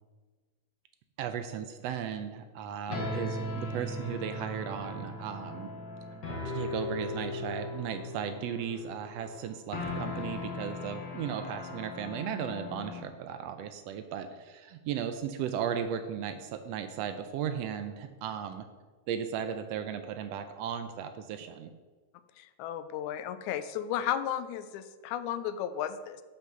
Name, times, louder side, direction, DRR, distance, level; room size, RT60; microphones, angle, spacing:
voice 1, 1.2-5.7 6.4-18.7 19.1-21.7, right 8 dB, 80° right, 8 dB, 1.5 m, -36 dB
sound 1, 2.9-13.1, left 2 dB, 50° left, 1.5 m, -38 dB
voice 2, 22.4-26.2, left 10 dB, 85° left, 11 dB, 2.0 m, -34 dB
7.9 x 5.9 x 6.7 m, 1.4 s
omnidirectional pair, 3.4 m